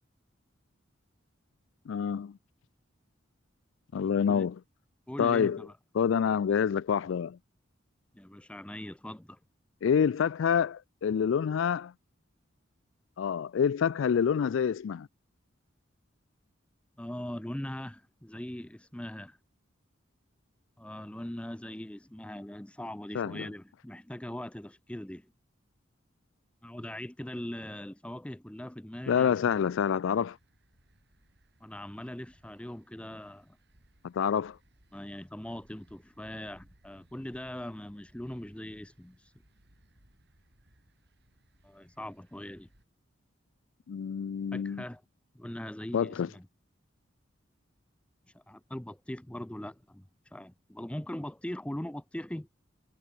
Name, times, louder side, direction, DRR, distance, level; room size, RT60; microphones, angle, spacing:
voice 1, 1.9-2.4 3.9-4.6 5.2-5.6 6.0-7.4 9.8-11.9 13.2-15.1 23.1-23.5 29.1-30.4 34.0-34.6 43.9-44.8 45.9-46.3, left 7 dB, 70° left, 0.3 m, -27 dB
voice 2, 5.1-5.7 8.1-9.4 17.0-19.4 20.8-25.3 26.6-29.7 31.6-33.6 34.9-39.2 41.6-42.7 44.5-45.0 45.3-46.5 48.3-52.5, left 1 dB, 5° left, 0.5 m, -41 dB
sound 1, 29.2-42.8, right 1 dB, 55° right, 6.1 m, -65 dB
head